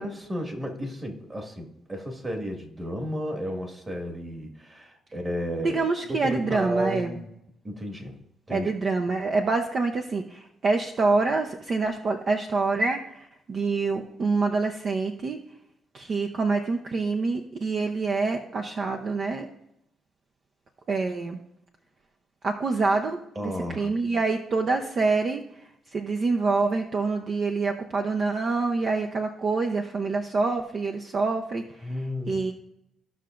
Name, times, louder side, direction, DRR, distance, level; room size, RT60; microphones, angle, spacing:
voice 1, 0.0-7.3 7.6-8.2 8.5-8.7 23.4-23.9 31.8-32.5, equal, 25° right, 2 dB, 1.9 m, -33 dB
voice 2, 5.6-7.2 8.5-15.4 15.9-19.5 20.9-21.4 22.4-25.4 25.9-31.9 32.3-32.5, right 3 dB, 50° right, 4 dB, 0.7 m, -26 dB
14.5 x 5.7 x 2.5 m, 0.81 s
cardioid pair, 90°, 0 cm